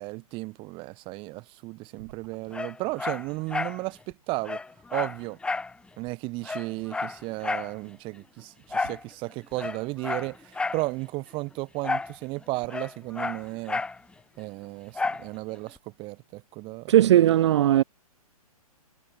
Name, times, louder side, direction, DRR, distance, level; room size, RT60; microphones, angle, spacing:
voice 1, 0.0-4.6 4.9-5.4 6.0-13.8 14.4-17.0, right 23 dB, 25° right, 1.4 m, -34 dB
Dog, 2.5-3.8 4.1-4.2 4.4-5.7 6.1-6.2 6.4-7.7 8.7-9.0 9.5-10.9 11.8-12.2 12.4-14.0 15.0-15.3 15.8-15.9, left 3 dB, 5° left, 0.9 m, -31 dB
voice 2, 16.9-17.8, right 12 dB, 45° right, 0.6 m, -18 dB
figure-of-eight pair, 125°, 20 cm